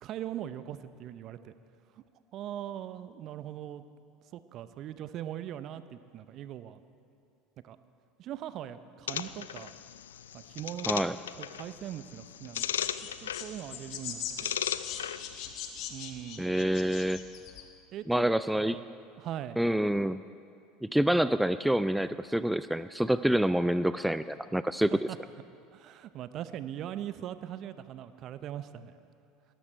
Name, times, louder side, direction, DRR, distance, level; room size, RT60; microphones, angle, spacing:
voice 1, 0.0-1.5 2.0-2.1 2.3-3.8 4.3-6.8 7.6-7.8 8.2-9.7 10.3-12.9 13.2-14.5 14.8-15.0 15.9-16.5 17.9-18.9 19.1-19.6 24.9-25.2 25.7-29.0, right 11 dB, 50° right, 13 dB, 0.7 m, -41 dB
sound 1, 9.1-15.5, left 10 dB, 80° left, 0.3 m, -37 dB
sound 2, 12.5-17.6, left 9 dB, 55° left, 1.4 m, -40 dB
voice 2, 16.4-17.2 18.1-18.8 19.6-20.2 20.8-24.9, right 1 dB, 5° right, 14 dB, 0.3 m, -27 dB
19.5 x 12.5 x 4.5 m, 2.7 s
hypercardioid pair, 75°, 0 cm